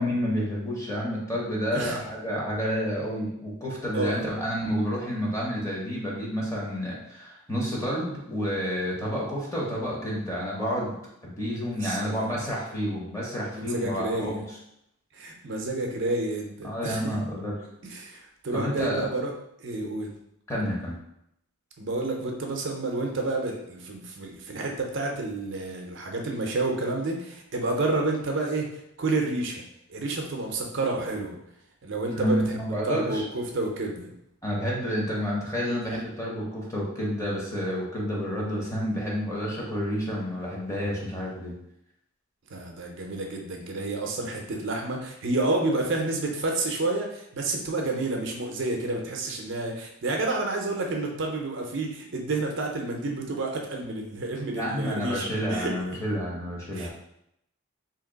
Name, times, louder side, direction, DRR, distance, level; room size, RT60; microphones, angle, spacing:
voice 1, 0.0-10.9 11.2-14.4 16.6-17.6 18.5-19.1 20.5-21.0 32.1-33.2 34.4-41.5 54.6-56.9, equal, 15° left, -4 dB, 0.8 m, -29 dB
voice 2, 3.9-4.3 11.8-12.4 13.5-14.4 15.1-17.2 17.8-19.3 19.6-20.1 21.8-29.6 29.9-31.4 31.8-32.6 32.8-34.1 35.9-36.0 42.5-55.2 55.5-56.0 56.7-56.9, right 2 dB, 55° right, 1 dB, 0.5 m, -30 dB
2.8 x 2.8 x 3.9 m, 0.78 s
head